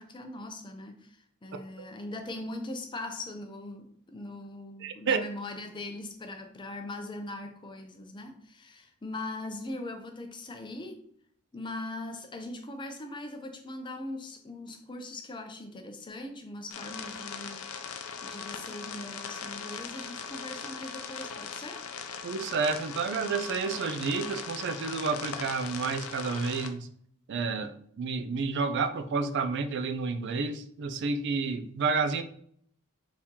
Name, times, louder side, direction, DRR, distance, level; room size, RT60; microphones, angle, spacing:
voice 1, 0.0-11.0 11.5-17.6 18.2-21.9, left 2 dB, 20° left, 0.5 m, -40 dB
voice 2, 4.8-5.2 22.2-26.9 27.3-27.7 28.0-32.2, right 4 dB, 55° right, 0.4 m, -30 dB
sound 1, 16.7-26.7, left 6 dB, 65° left, 0.5 m, -40 dB
4.3 x 2.9 x 3.6 m
head